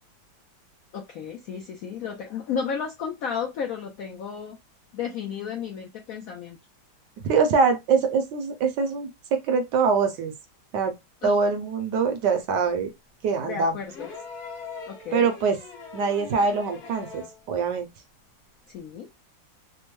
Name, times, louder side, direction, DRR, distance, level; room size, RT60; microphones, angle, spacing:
voice 1, 0.9-4.6 4.9-6.6 11.2-11.3 13.4-14.1 14.9-15.3 18.7-19.1, left 7 dB, 75° left, 0.8 m, -33 dB
voice 2, 7.2-10.3 10.7-10.9 11.2-12.9 13.2-13.8 15.1-15.6 15.9-17.9, right 5 dB, 70° right, 1.1 m, -24 dB
sound 1, 13.9-17.4 18.8-18.9, left 5 dB, 45° left, 1.0 m, -41 dB
3.4 x 2.1 x 3.0 m
omnidirectional pair, 2.1 m